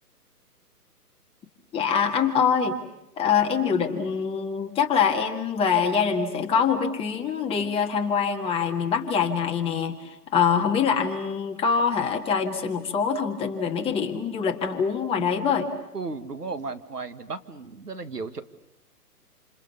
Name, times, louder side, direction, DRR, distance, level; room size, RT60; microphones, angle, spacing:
voice 1, 1.7-2.8 3.2-15.7, left 6 dB, 10° left, 3 dB, 1.8 m, -24 dB
voice 2, 15.9-18.4, right 4 dB, 75° right, 8 dB, 2.1 m, -34 dB
28.5 x 28.5 x 7.0 m, 0.87 s
figure-of-eight pair, 130°, 47 cm